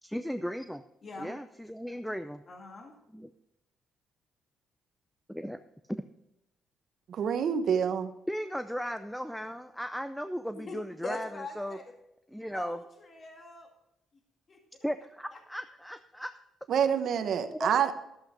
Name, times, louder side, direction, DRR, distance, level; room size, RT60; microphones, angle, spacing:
voice 1, 0.0-0.8 1.2-2.4 3.1-3.3 5.3-5.6 8.3-11.3 11.6-11.8 12.3-12.8 14.8-16.3 17.5-17.7, equal, ahead, 10 dB, 0.5 m, -36 dB
voice 2, 1.0-1.3 2.5-3.0 10.5-11.8 12.5-13.7 14.5-14.6 15.3-15.4, left 2 dB, 40° left, 3 dB, 1.8 m, -42 dB
voice 3, 7.1-8.1 16.7-17.9, right 8 dB, 65° right, 8 dB, 1.0 m, -27 dB
12.0 x 8.0 x 5.1 m, 0.84 s
cardioid pair, 90°, 0 cm